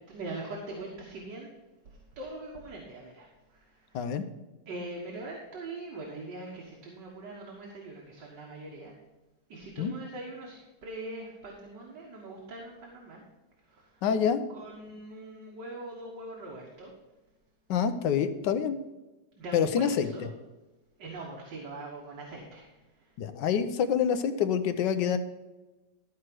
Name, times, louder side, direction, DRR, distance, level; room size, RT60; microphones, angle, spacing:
voice 1, 0.1-1.5 1.9-4.2 4.7-8.9 9.5-13.2 13.7-14.0 14.5-16.9 19.4-20.3 21.0-23.1, right 2 dB, 85° right, -2 dB, 2.1 m, -42 dB
voice 2, 3.9-4.2 9.8-9.9 14.0-14.4 17.7-18.8 19.5-20.1 23.2-25.2, left 7 dB, 90° left, 10 dB, 1.4 m, -26 dB
13.0 x 4.8 x 6.0 m, 1.1 s
omnidirectional pair, 1.8 m